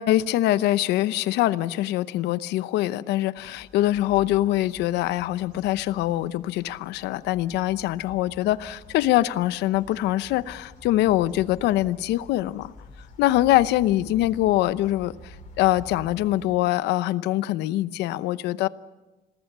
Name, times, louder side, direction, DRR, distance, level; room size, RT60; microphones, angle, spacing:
voice 1, 0.0-12.7 13.2-18.7, left 15 dB, 85° left, 15 dB, 0.8 m, -23 dB
sound 1, 3.4-16.5, left 1 dB, 50° left, 6.1 m, -48 dB
27.0 x 19.0 x 6.8 m, 1.1 s
cardioid pair, 110°, 17 cm